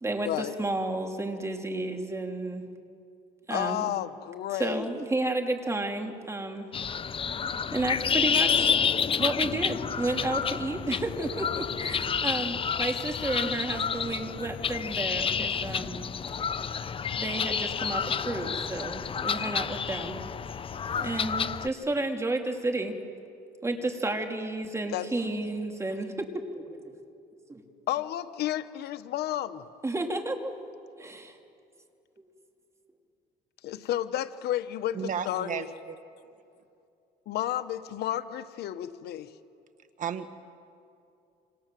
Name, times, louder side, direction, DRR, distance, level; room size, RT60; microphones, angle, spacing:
voice 1, 0.0-2.6 3.5-3.9 4.5-6.7 7.7-8.7 9.2-16.0 17.2-20.3 20.9-22.9 23.6-26.3 26.5-26.8 27.5-27.6 29.8-30.5 31.0-31.4, right 2 dB, 15° right, 4 dB, 3.0 m, -32 dB
voice 2, 3.5-4.9 24.9-25.1 27.9-29.6 33.6-35.7 37.3-39.3, left 12 dB, 75° left, 12 dB, 1.1 m, -31 dB
sound 1, 6.7-21.7, left 6 dB, 35° left, 0.8 m, -29 dB
voice 3, 34.9-36.0 36.2-36.3 40.0-40.3, right 7 dB, 50° right, 9 dB, 1.6 m, -34 dB
27.5 x 27.0 x 7.6 m, 2.6 s
cardioid pair, 110°, 17 cm